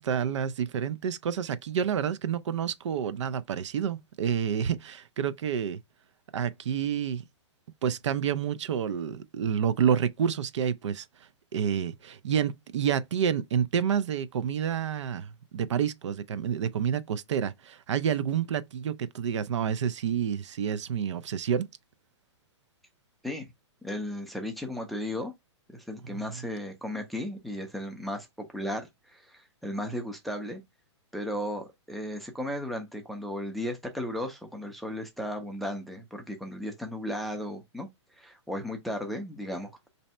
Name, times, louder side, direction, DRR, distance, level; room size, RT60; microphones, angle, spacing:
voice 1, 0.0-5.8 6.3-7.2 7.8-11.1 11.5-21.7 26.3-26.4, right 8 dB, 75° right, 0.5 m, -29 dB
voice 2, 23.8-25.3 25.7-30.6 31.1-37.9 38.2-39.9, left 1 dB, ahead, 0.4 m, -35 dB
3.2 x 2.7 x 4.1 m
hypercardioid pair, 155°, 15 cm